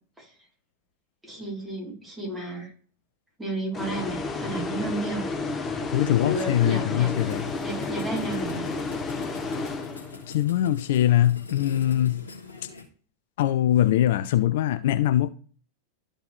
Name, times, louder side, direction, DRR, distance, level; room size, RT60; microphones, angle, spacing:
voice 1, 1.2-2.7 3.4-5.2 6.2-7.1 7.6-8.7, right 2 dB, 10° right, 3.3 m, -32 dB
sound 1, 3.7-10.4, left 3 dB, 20° left, 1.1 m, -31 dB
voice 2, 5.9-7.5 10.3-12.3 13.4-15.3, left 12 dB, 55° left, 0.4 m, -22 dB
sound 2, 7.1-12.8, left 4 dB, 70° left, 1.6 m, -43 dB
12.5 x 4.5 x 3.2 m
figure-of-eight pair, 90°, 0 cm